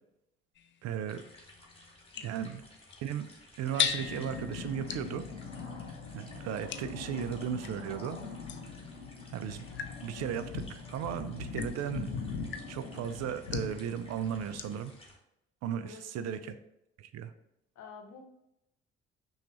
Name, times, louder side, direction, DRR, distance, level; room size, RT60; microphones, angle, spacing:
sound 1, 0.5-7.8 8.5-14.9, left 8 dB, 35° left, 0.4 m, -41 dB
voice 1, 0.8-1.2 2.2-2.6 3.0-3.3 3.6-5.2 6.1-8.2 9.3-9.7 10.0-12.1 12.7-14.9 15.6-16.5 17.0-17.3, right 9 dB, 50° right, 11 dB, 0.4 m, -36 dB
sound 2, 1.1-15.2, left 2 dB, 15° left, 1.2 m, -56 dB
voice 2, 2.1-2.6 15.8-16.4 17.7-18.2, left 5 dB, 55° left, 4 dB, 0.9 m, -51 dB
sound 3, 3.8-14.7, left 5 dB, 90° left, 0.6 m, -42 dB
5.7 x 2.4 x 3.0 m, 0.83 s
hypercardioid pair, 45°, 33 cm